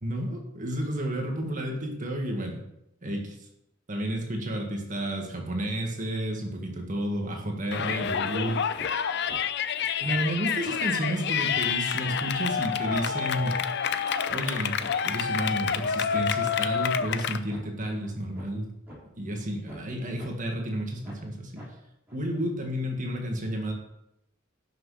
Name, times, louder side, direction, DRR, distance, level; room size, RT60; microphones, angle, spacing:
voice 1, 0.0-2.6 3.0-3.4 3.9-8.7 10.0-13.6 14.3-14.8 15.0-18.7 19.2-21.7 22.1-23.7, right 1 dB, 40° right, 2 dB, 1.8 m, -31 dB
Yell, 7.7-17.4, left 7 dB, 55° left, 0.5 m, -28 dB
sound 1, 8.0-8.1 8.5-8.9 9.3-9.4 9.8-9.9 10.1-10.3 10.6-10.8 11.2-11.3 11.5-11.7 12.1-12.2 12.6-13.5 13.9-14.0 14.3-14.4 14.8-14.9 15.3-16.2 16.6-16.7 17.0-17.2 17.5-17.6 18.0-18.1 18.3-18.6 18.9-19.0 19.4-19.9 20.2-20.3 20.7-20.8 21.0-21.3 21.6-21.7 22.1-22.2, equal, 10° right, 4.2 m, -45 dB
11.0 x 6.4 x 4.9 m, 0.82 s
head